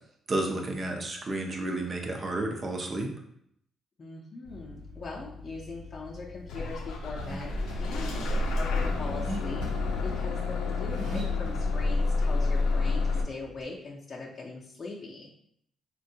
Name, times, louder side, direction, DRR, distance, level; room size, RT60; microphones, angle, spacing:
voice 1, 0.3-3.1, right 2 dB, 35° right, 2 dB, 0.6 m, -31 dB
voice 2, 4.0-9.7 10.0-15.3, left 3 dB, 35° left, -4 dB, 0.5 m, -41 dB
Car / Accelerating revving vroom, 4.4-13.6, equal, 90° right, 0.7 m, -40 dB
Bus / Engine starting, 6.5-13.2, left 3 dB, 90° left, 0.4 m, -29 dB
3.5 x 2.2 x 2.7 m, 0.71 s
cardioid pair, 90°, 0 cm